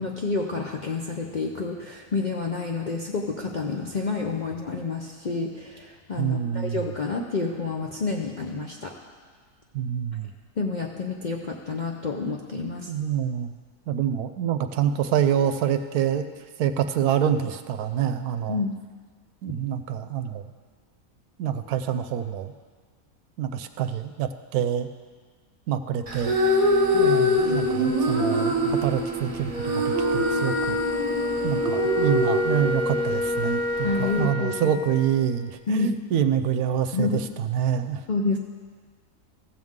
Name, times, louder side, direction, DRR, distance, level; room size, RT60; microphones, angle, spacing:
voice 1, 0.0-9.0 10.6-12.9 18.5-18.8 33.8-34.8 35.7-36.0 36.9-37.2 38.1-38.4, left 4 dB, 55° left, 0 dB, 0.5 m, -29 dB
voice 2, 6.2-6.8 9.7-10.3 12.9-13.5 13.9-16.3 16.6-18.6 19.4-20.5 21.4-22.5 23.4-24.9 25.7-26.3 26.9-30.8 31.4-38.0, right 9 dB, 80° right, 9 dB, 1.1 m, -26 dB
sound 1, 26.1-34.3, equal, 25° right, 0.9 m, -25 dB
Wind instrument woodwind instrument, 29.5-35.1, left 2 dB, 85° left, 2.4 m, -28 dB
14.5 x 7.8 x 3.7 m, 1.5 s
omnidirectional pair, 1.6 m